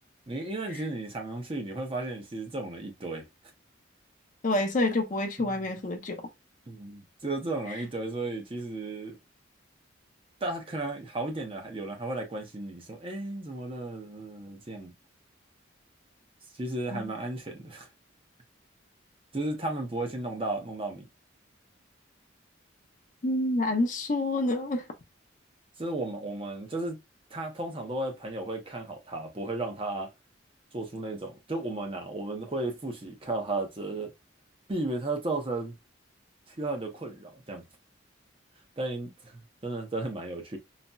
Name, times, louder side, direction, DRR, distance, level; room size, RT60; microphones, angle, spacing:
voice 1, 0.3-3.3 5.4-5.6 6.7-9.2 10.4-14.9 16.5-17.9 19.3-21.1 25.8-27.0 27.3-30.1 30.7-34.1 34.7-35.7 36.5-37.6 38.8-40.6, right 2 dB, 30° right, 0.6 m, -34 dB
voice 2, 4.4-6.2 16.9-17.1 23.2-24.8, left 2 dB, 40° left, 0.5 m, -28 dB
4.0 x 2.0 x 2.2 m
head